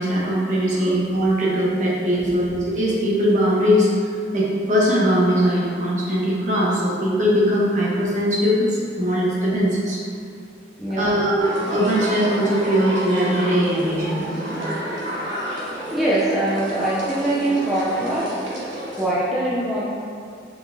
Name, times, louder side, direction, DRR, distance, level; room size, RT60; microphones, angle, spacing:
voice 1, 0.0-3.9 4.3-10.0 11.0-14.3, equal, 40° right, -6 dB, 1.0 m, -20 dB
voice 2, 2.2-2.5 10.8-11.4 15.9-18.4 18.9-19.8, right 1 dB, ahead, -9 dB, 0.4 m, -23 dB
sound 1, 11.4-19.1, right 1 dB, 85° right, 1.1 m, -30 dB
4.7 x 4.2 x 2.6 m, 2.4 s
head